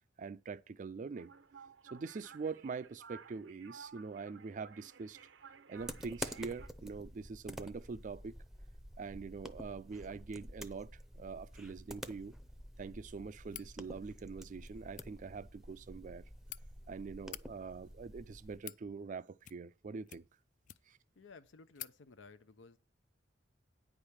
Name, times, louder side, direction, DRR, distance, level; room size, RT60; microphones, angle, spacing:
voice 1, 0.2-1.3 1.9-5.2 5.7-8.3 9.0-12.3 12.8-16.2 16.9-20.2 20.9-21.0, right 4 dB, 45° right, 0.4 m, -44 dB
sound 1, 1.2-6.7, right 6 dB, 85° right, 0.7 m, -56 dB
sound 2, 5.8-18.6, equal, 5° right, 0.6 m, -49 dB
sound 3, 13.5-13.7 14.8-15.1 16.1-16.6 17.2-17.4 18.2-18.8 19.4-19.8 20.1-21.0 21.4-21.5 21.7-22.0, left 13 dB, 45° left, 0.4 m, -49 dB
voice 2, 21.2-22.8, left 4 dB, 85° left, 0.6 m, -56 dB
9.3 x 5.0 x 7.1 m
head